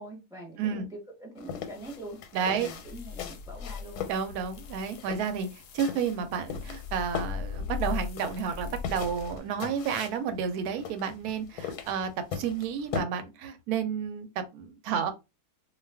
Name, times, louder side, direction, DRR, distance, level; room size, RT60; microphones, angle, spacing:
voice 1, 0.0-4.0, right 1 dB, 5° right, 0.6 m, -44 dB
voice 2, 0.6-0.9 2.3-2.7 4.1-5.5 5.7-15.1, right 7 dB, 80° right, 1.1 m, -31 dB
sound 1, 1.4-13.0, left 7 dB, 85° left, 1.1 m, -39 dB
sound 2, 1.5-9.4, left 6 dB, 70° left, 0.8 m, -40 dB
2.4 x 2.3 x 3.3 m
omnidirectional pair, 1.7 m